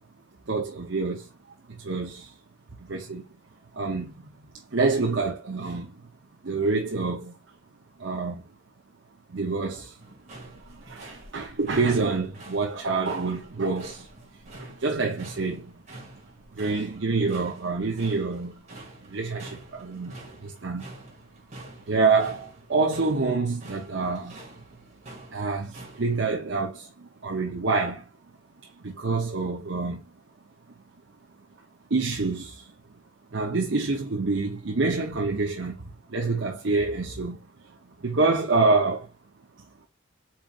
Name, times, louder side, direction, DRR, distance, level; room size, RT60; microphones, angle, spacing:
voice 1, 0.5-1.3 1.7-2.3 2.8-3.2 3.7-4.1 4.7-5.9 6.4-7.4 8.0-8.4 9.3-10.0 10.7-14.1 14.6-15.8 16.5-18.6 19.1-20.9 21.9-24.5 25.3-28.1 28.6-30.0 31.9-32.7 33.3-37.4 38.0-39.1, right 3 dB, 70° right, 0.8 m, -27 dB
sound 1, 10.0-26.2, right 2 dB, 40° right, 2.4 m, -47 dB
4.7 x 4.5 x 2.5 m
head